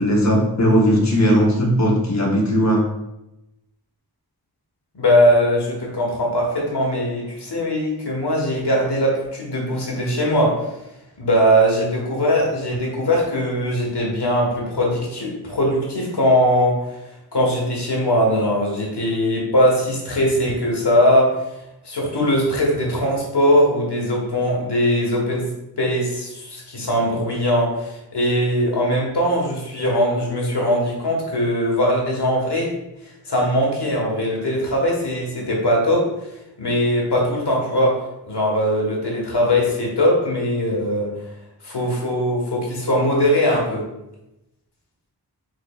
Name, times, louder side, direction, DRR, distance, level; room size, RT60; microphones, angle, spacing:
voice 1, 0.0-2.8, equal, 45° left, -2 dB, 0.9 m, -17 dB
voice 2, 4.9-10.6 11.2-16.9 17.3-21.4 21.8-25.4 25.8-32.7 33.3-36.1 36.6-38.0 38.2-41.1 41.6-43.8, equal, 85° left, -2 dB, 1.4 m, -20 dB
4.8 x 4.7 x 2.3 m, 0.89 s
wide cardioid pair, 60°, 39 cm